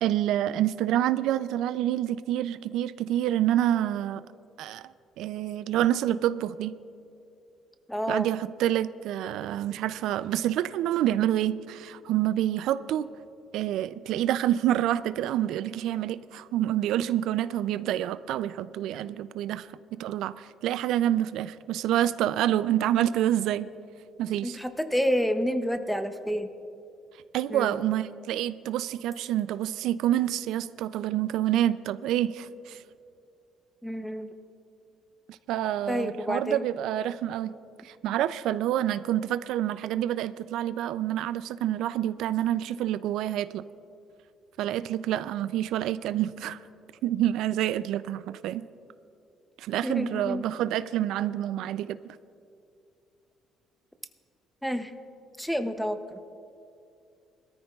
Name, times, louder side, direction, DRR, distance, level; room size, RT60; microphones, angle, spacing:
voice 1, 0.0-4.2 4.6-4.8 5.2-6.8 8.1-13.1 13.5-23.7 24.2-24.6 27.3-32.8 35.3-37.5 37.8-43.6 44.6-46.6 47.0-48.7 49.6-52.0, right 12 dB, 80° right, 14 dB, 0.3 m, -27 dB
voice 2, 7.9-8.3 24.4-26.5 27.5-27.9 33.8-34.3 35.9-36.7 49.8-50.4 54.6-54.9 55.4-56.2, equal, ahead, 9 dB, 0.6 m, -29 dB
22.5 x 13.5 x 2.4 m, 2.5 s
cardioid pair, 140°, 0 cm